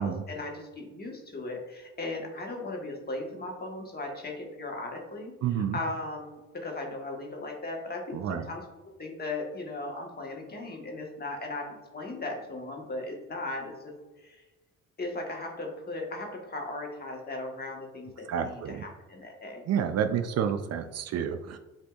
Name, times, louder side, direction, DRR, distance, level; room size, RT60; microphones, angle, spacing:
voice 1, 0.0-8.6 9.0-14.4 15.0-19.6, left 2 dB, 30° left, 1 dB, 1.2 m, -37 dB
voice 2, 5.4-5.8 8.1-8.4 18.3-18.8 19.7-21.6, right 8 dB, 55° right, 8 dB, 0.4 m, -29 dB
7.8 x 2.6 x 2.3 m, 1.1 s
cardioid pair, 90°, 30 cm